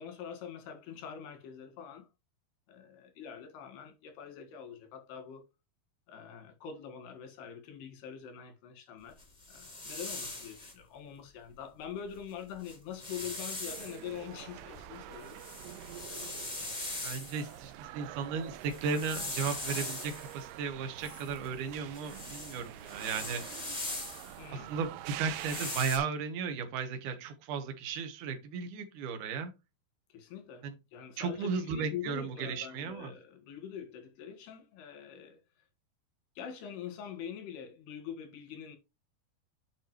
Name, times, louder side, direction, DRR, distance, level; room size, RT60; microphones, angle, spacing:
voice 1, 0.0-2.1 2.7-5.4 6.1-9.2 9.5-15.4 16.0-16.5 24.4-24.7 30.1-35.6 36.4-38.8, left 8 dB, 85° left, 3.7 m, -44 dB
sound 1, 9.2-10.7 12.1-12.2 12.5-14.0 14.6-17.6 18.5-20.4 21.0-24.4 25.2-26.0, left 2 dB, 45° left, 0.5 m, -41 dB
sound 2, 13.7-25.8, right 14 dB, 90° right, 2.0 m, -46 dB
voice 2, 17.0-23.7 24.5-29.5 30.6-30.7 31.2-33.1, right 5 dB, 65° right, 2.5 m, -35 dB
8.7 x 5.2 x 3.0 m
omnidirectional pair, 4.6 m